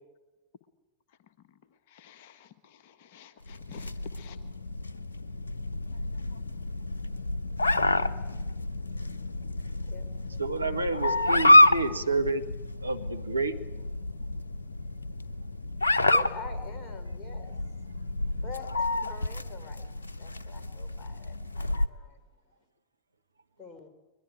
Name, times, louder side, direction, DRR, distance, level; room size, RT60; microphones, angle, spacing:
voice 1, 1.9-4.4, left 8 dB, 50° left, 9 dB, 1.4 m, -51 dB
sound 1, 3.5-21.9, left 1 dB, 75° left, 1.0 m, -28 dB
voice 2, 9.8-10.4 15.9-17.6 18.4-19.9 20.2-22.2 23.6-23.9, left 4 dB, 20° left, 4 dB, 4.3 m, -45 dB
voice 3, 10.4-12.4 12.8-13.6, right 3 dB, 80° right, 6 dB, 1.4 m, -29 dB
22.5 x 22.0 x 9.0 m, 1.1 s
figure-of-eight pair, 90°, 0 cm